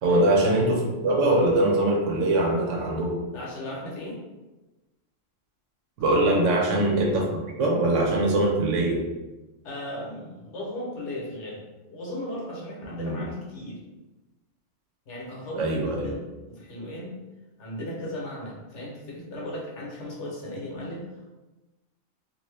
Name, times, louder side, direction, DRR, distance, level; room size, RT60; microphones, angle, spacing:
voice 1, 0.0-3.2 6.0-7.3 7.6-9.0 13.0-13.2 15.6-16.1, right 2 dB, 70° right, -1 dB, 1.0 m, -22 dB
voice 2, 3.3-4.2 6.0-6.4 9.6-11.6 11.9-13.8 15.1-17.2 17.6-21.3, left 1 dB, 65° left, -4 dB, 1.1 m, -36 dB
2.6 x 2.5 x 3.2 m, 1.1 s
omnidirectional pair, 1.4 m